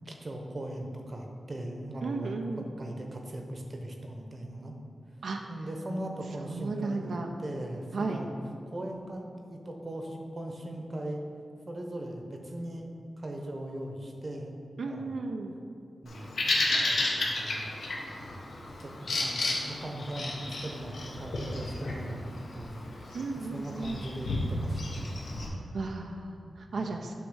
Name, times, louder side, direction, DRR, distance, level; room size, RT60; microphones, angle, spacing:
voice 1, 0.0-2.4 2.8-4.7 5.5-8.3 8.7-11.2 11.7-12.9 13.2-14.6 14.9-15.2 16.0-17.7 18.8-22.9 23.3-25.3 26.8-27.0, right 1 dB, 40° right, 2 dB, 0.9 m, -39 dB
voice 2, 2.0-2.7 5.2-5.4 6.4-7.3 7.9-8.2 14.8-15.6 23.1-24.1 25.7-27.1, right 3 dB, 80° right, 3 dB, 0.5 m, -34 dB
Bird vocalization bird call bird song, 16.1-25.5, left 2 dB, 85° left, 1.1 m, -33 dB
8.3 x 3.1 x 6.3 m, 2.6 s
wide cardioid pair, 105°, 0 cm